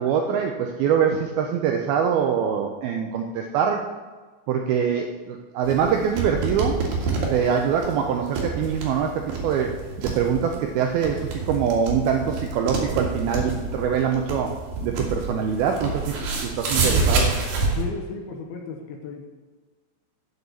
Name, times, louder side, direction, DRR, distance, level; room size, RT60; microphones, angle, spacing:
voice 1, 0.0-3.9 4.5-6.8 7.3-9.8 10.0-14.5 14.8-17.4, right 7 dB, 80° right, 3 dB, 2.2 m, -24 dB
sound 1, 5.6-17.8, right 3 dB, 60° right, 3.4 m, -28 dB
voice 2, 17.7-19.3, left 4 dB, 70° left, 2 dB, 2.6 m, -34 dB
7.9 x 7.8 x 6.8 m, 1.4 s
omnidirectional pair, 5.1 m